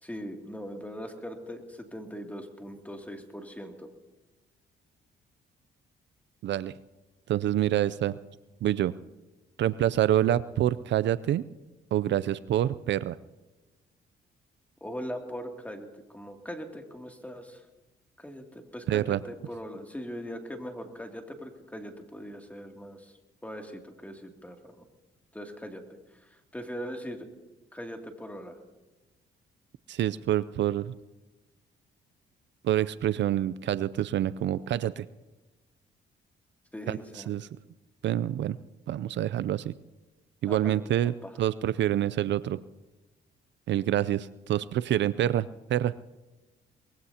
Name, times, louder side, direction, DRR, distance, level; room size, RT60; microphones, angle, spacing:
voice 1, 0.0-3.9 14.8-17.6 18.2-23.1 23.4-24.6 25.3-25.8 26.2-27.3 27.7-28.6 36.7-37.3 40.5-40.9 41.2-41.3, equal, 5° left, 3 dB, 2.6 m, -40 dB
voice 2, 6.4-6.7 7.3-8.2 8.6-8.9 9.6-11.4 11.9-13.2 18.9-19.2 29.9-30.9 32.6-35.1 36.9-37.5 38.0-38.6 38.9-39.7 40.4-42.6 43.7-45.9, right 12 dB, 65° right, 16 dB, 0.5 m, -27 dB
24.0 x 20.5 x 2.9 m, 1.1 s
cardioid pair, 90°, 20 cm